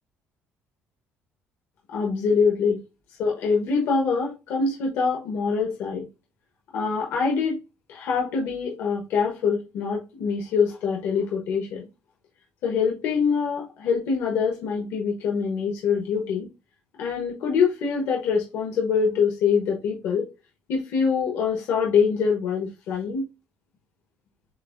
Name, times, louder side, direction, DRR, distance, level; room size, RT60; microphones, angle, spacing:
voice 1, 1.9-2.8 3.2-6.1 6.7-7.6 7.9-11.9 12.6-16.5 17.0-20.3 20.7-23.2, left 5 dB, 65° left, 1.1 m, -24 dB
7.5 x 2.6 x 2.5 m
cardioid pair, 175°, 5 cm